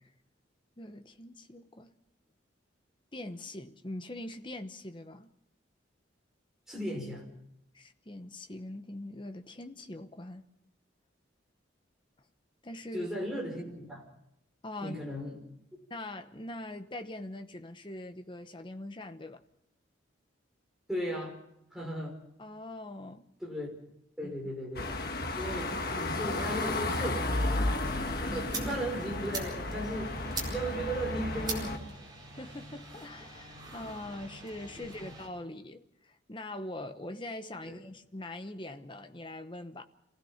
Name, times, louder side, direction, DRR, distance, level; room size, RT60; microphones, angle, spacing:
voice 1, 0.8-1.9 3.1-5.3 7.7-10.5 12.6-13.1 14.6-15.0 15.9-19.4 22.4-23.3 24.2-24.3 28.3-28.5 32.3-39.9, left 1 dB, 25° left, 1.0 m, -42 dB
voice 2, 6.7-7.2 12.9-14.0 14.8-15.4 20.9-21.4 21.7-22.2 23.4-23.7 24.2-24.9 25.3-27.8 28.1-30.2 30.5-31.9 35.0-35.1 37.7-37.8, right 1 dB, 5° right, 5.5 m, -36 dB
sound 1, 24.7-31.8, left 2 dB, 50° left, 1.5 m, -33 dB
sound 2, 27.8-35.3, right 3 dB, 20° right, 4.5 m, -43 dB
27.0 x 16.5 x 5.8 m
head